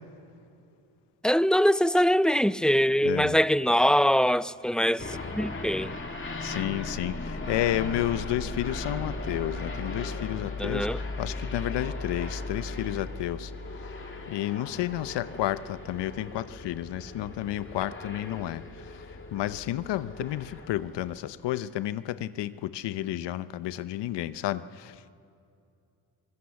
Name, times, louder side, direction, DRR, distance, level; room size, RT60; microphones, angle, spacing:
voice 1, 1.2-6.0 10.6-11.0, equal, ahead, 0.4 m, -23 dB
voice 2, 3.0-3.4 6.4-10.9 11.2-13.5 14.3-18.6 19.3-25.1, left 13 dB, 75° left, 0.9 m, -31 dB
sound 1, 5.0-21.2, left 2 dB, 30° left, 2.7 m, -37 dB
24.5 x 19.5 x 7.1 m
supercardioid pair, 70°, 43 cm